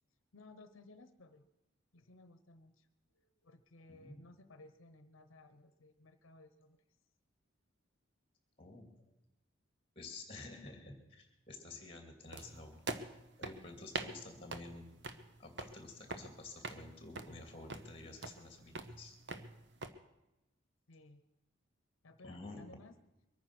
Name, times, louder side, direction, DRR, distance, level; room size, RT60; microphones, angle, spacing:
voice 1, 0.3-1.5 1.9-2.9 3.1-6.8 20.9-21.2 22.0-22.9, left 2 dB, 85° left, 9 dB, 0.9 m, -59 dB
voice 2, 3.9-4.3 8.6-8.9 10.0-13.0 13.4-14.9 15.4-19.1 22.2-22.6, left 2 dB, 25° left, 4 dB, 2.6 m, -51 dB
sound 1, 12.3-19.9, right 3 dB, 60° right, 0.9 m, -46 dB
23.0 x 9.5 x 6.1 m, 0.96 s
head